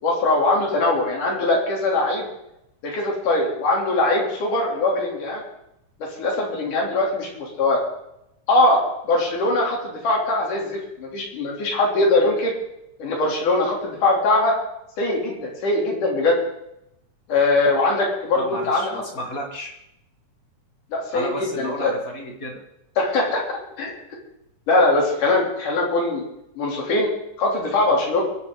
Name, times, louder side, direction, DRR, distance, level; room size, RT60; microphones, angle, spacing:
voice 1, 0.0-2.3 2.8-5.4 6.2-7.8 8.5-12.5 13.0-14.6 15.0-16.4 17.3-19.0 20.9-21.9 23.0-23.4 23.8-23.9 24.7-26.2 26.6-27.1 27.4-28.2, left 2 dB, 80° left, -1 dB, 4.7 m, -21 dB
voice 2, 18.3-19.7 21.1-22.6, equal, 35° left, 2 dB, 1.8 m, -32 dB
23.5 x 11.0 x 3.9 m, 0.83 s
omnidirectional pair, 3.6 m